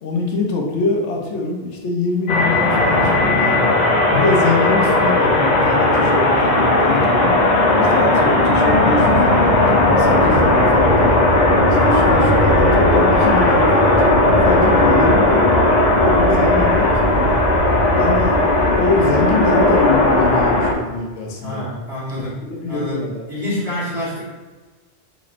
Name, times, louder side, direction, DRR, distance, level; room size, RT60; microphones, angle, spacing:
voice 1, 0.0-3.7 4.1-7.4 7.9-11.2 11.8-15.4 16.0-17.4 17.9-21.6 22.4-23.2, left 2 dB, 80° left, 0 dB, 1.0 m, -23 dB
sound 1, 2.3-20.7, left 2 dB, 55° left, 0.5 m, -15 dB
voice 2, 21.4-22.3 22.7-24.2, left 1 dB, 60° right, -9 dB, 1.9 m, -27 dB
4.1 x 3.0 x 2.4 m, 1.3 s
omnidirectional pair, 1.2 m